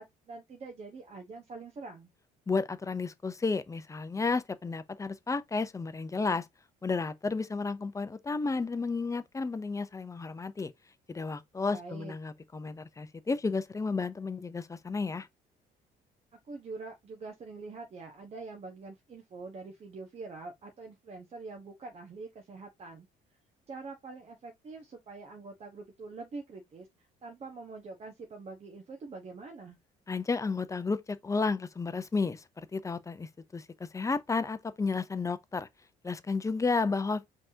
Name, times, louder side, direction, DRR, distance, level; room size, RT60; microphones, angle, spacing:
voice 1, 0.0-2.1 11.7-12.1 16.5-23.1 23.7-29.8, right 3 dB, 40° right, 1.2 m, -45 dB
voice 2, 2.5-6.5 6.8-10.7 11.1-15.3 30.1-35.7 36.0-37.3, left 4 dB, 20° left, 0.6 m, -32 dB
5.3 x 3.5 x 2.8 m
cardioid pair, 110°, 17 cm